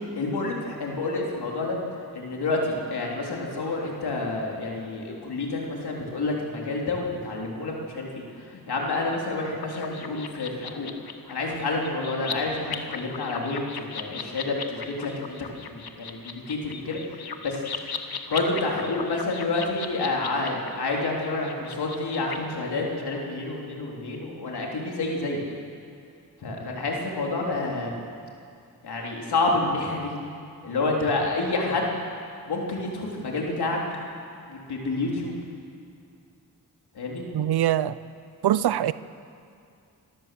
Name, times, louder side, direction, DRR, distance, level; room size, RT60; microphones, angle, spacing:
voice 1, 0.2-1.8 2.1-8.2 8.5-10.9 11.3-15.3 15.6-17.6 18.3-25.4 26.4-27.9 28.8-30.1 30.6-31.9 32.5-33.8 34.5-35.3 36.9-37.3, left 2 dB, 90° left, -1 dB, 3.5 m, -29 dB
sound 1, 9.6-22.4, left 6 dB, 70° left, 1.4 m, -38 dB
voice 2, 37.3-38.0 38.4-38.9, right 11 dB, 90° right, 16 dB, 0.6 m, -23 dB
26.0 x 13.5 x 7.7 m, 2.4 s
cardioid pair, 60°, 38 cm